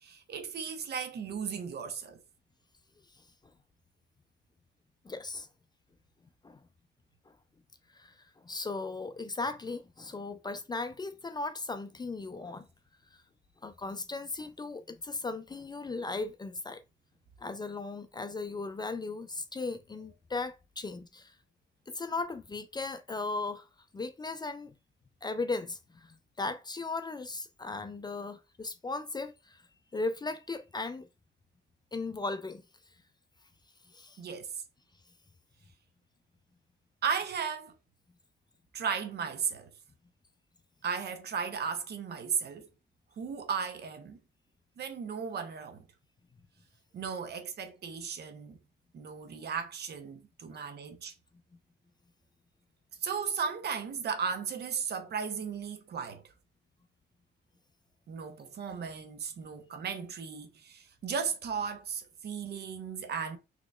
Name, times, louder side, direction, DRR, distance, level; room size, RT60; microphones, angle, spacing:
voice 1, 0.0-2.2 34.2-34.5 37.0-37.7 38.7-39.7 40.8-42.7 43.2-44.2 44.8-45.9 46.9-48.6 48.9-51.1 53.0-56.2 58.1-63.4, right 6 dB, 55° right, 0.7 m, -35 dB
voice 2, 5.0-5.5 6.4-6.6 7.9-8.1 8.4-12.7 13.6-16.8 17.4-21.3 21.9-23.7 23.9-24.7 25.2-29.6 29.9-31.1 31.9-32.6 33.9-34.2, left 3 dB, 20° left, 0.4 m, -37 dB
4.0 x 3.0 x 2.3 m
cardioid pair, 90°, 20 cm